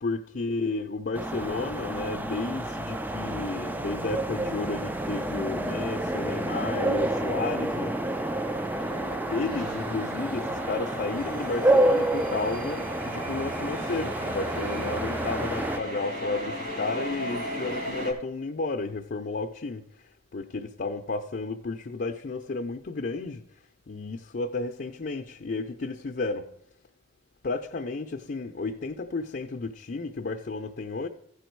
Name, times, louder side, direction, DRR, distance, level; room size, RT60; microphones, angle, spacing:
voice 1, 0.0-8.0 9.3-19.9 20.3-23.4 23.9-26.5 27.4-31.1, left 3 dB, 55° left, 0.5 m, -32 dB
sound 1, 1.1-15.8, right 1 dB, 10° right, 0.4 m, -29 dB
sound 2, 4.4-18.1, equal, 45° right, 2.8 m, -38 dB
15.5 x 5.1 x 4.6 m
head